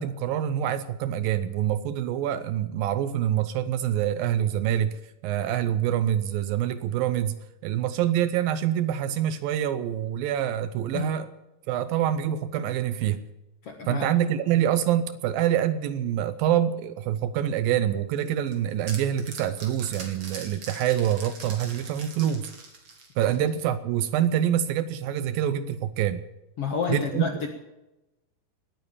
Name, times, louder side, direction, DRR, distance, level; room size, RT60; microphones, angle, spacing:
voice 1, 0.0-7.4 7.6-11.3 11.7-13.2 13.9-22.5 23.2-26.2 26.9-27.5, right 10 dB, 75° right, 13 dB, 2.4 m, -26 dB
voice 2, 13.6-14.1 26.6-27.5, left 6 dB, 60° left, 4 dB, 1.7 m, -29 dB
sound 1, 18.2-23.7, right 3 dB, 45° right, 3.6 m, -42 dB
19.0 x 9.5 x 7.2 m, 0.95 s
omnidirectional pair, 4.4 m